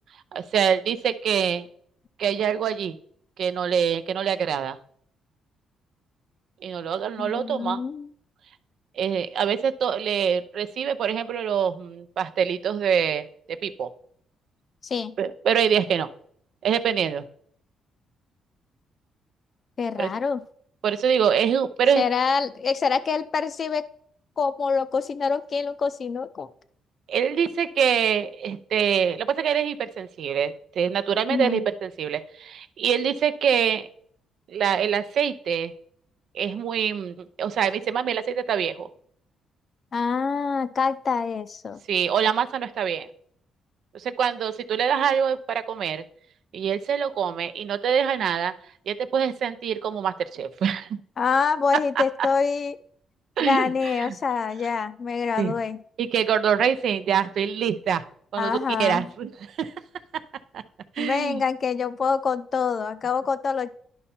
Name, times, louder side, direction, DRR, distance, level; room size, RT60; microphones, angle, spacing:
voice 1, 0.3-1.6 2.2-3.0 3.4-4.8 6.6-7.8 9.0-13.9 15.2-16.1 16.6-17.2 20.0-20.1 20.8-22.0 27.1-33.9 34.5-35.7 36.3-38.9 41.9-43.1 43.9-46.0 46.5-48.5 48.9-51.0 52.0-52.1 53.4-53.7 54.0-54.2 55.4-55.5 56.0-58.0 58.3-58.5 58.8-59.7 60.5-60.6 61.0-61.4, right 7 dB, 65° right, 12 dB, 0.5 m, -25 dB
voice 2, 7.2-8.1 14.8-15.1 19.8-20.4 22.0-23.9 24.4-26.5 31.3-31.6 39.9-41.8 51.2-52.8 53.4-55.8 58.4-59.1 61.0-63.7, left 5 dB, 45° left, 13 dB, 0.5 m, -25 dB
11.0 x 5.4 x 4.3 m, 0.64 s
cardioid pair, 90°, 0 cm